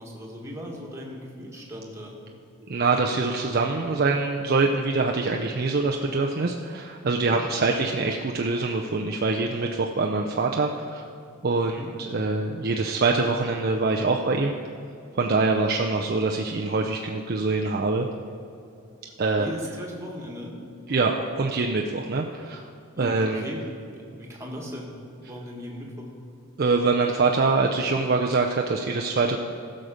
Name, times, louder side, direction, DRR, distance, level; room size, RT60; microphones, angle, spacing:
voice 1, 0.0-2.2 7.3-7.7 11.6-11.9 19.4-20.6 20.9-21.0 22.9-24.9 25.2-26.1, equal, 15° right, -2 dB, 1.5 m, -38 dB
voice 2, 2.7-11.0 11.4-14.5 15.1-18.1 19.2-19.5 20.9-22.6 23.0-23.4 26.6-29.4, right 3 dB, 45° right, 1 dB, 0.5 m, -24 dB
15.0 x 6.5 x 5.0 m, 2.6 s
head